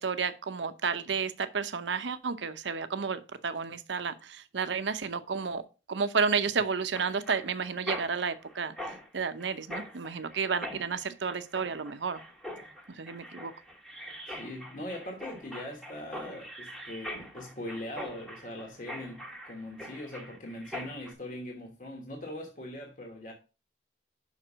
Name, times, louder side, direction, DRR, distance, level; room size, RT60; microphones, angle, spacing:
voice 1, 0.0-5.6 5.9-8.7 9.1-12.2 13.0-13.5, right 5 dB, 80° right, 0.7 m, -31 dB
Mechanisms, 6.9-21.1, left 1 dB, ahead, 1.1 m, -43 dB
voice 2, 14.3-23.3, left 1 dB, 45° left, 1.3 m, -41 dB
5.8 x 4.5 x 6.0 m
head